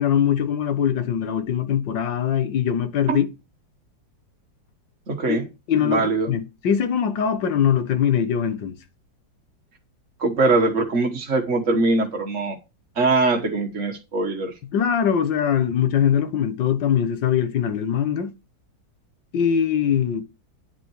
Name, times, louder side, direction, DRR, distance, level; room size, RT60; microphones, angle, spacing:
voice 1, 0.0-3.3 5.3-5.4 5.7-8.8 14.7-18.3 19.3-20.2, left 8 dB, 75° left, 1.9 m, -22 dB
voice 2, 5.1-5.4 5.8-6.3 10.2-12.6 12.9-14.5, right 3 dB, 45° right, 1.6 m, -22 dB
10.0 x 8.5 x 4.7 m
omnidirectional pair, 2.0 m